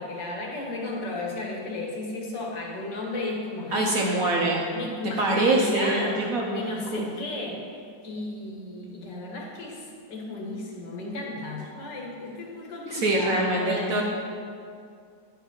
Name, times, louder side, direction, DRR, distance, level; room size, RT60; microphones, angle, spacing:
voice 1, 0.0-3.9 4.7-14.0, left 2 dB, 65° left, -1 dB, 2.0 m, -34 dB
voice 2, 3.7-4.7 5.2-7.1 12.9-14.0, right 2 dB, 60° right, -1 dB, 1.0 m, -24 dB
9.9 x 5.3 x 5.4 m, 2.3 s
omnidirectional pair, 2.1 m